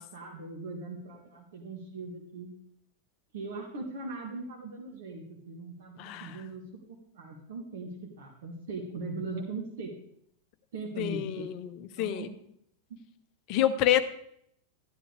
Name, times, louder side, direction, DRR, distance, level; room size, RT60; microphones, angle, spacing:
voice 1, 0.0-2.5 3.3-9.9 10.7-11.5 12.0-12.4 12.9-13.0, right 3 dB, 55° right, 1 dB, 1.7 m, -40 dB
voice 2, 6.0-6.3 11.0-11.7 12.0-12.3 13.5-14.0, left 11 dB, 40° left, 11 dB, 0.8 m, -27 dB
12.5 x 10.5 x 3.3 m, 0.69 s
figure-of-eight pair, 90°, 0 cm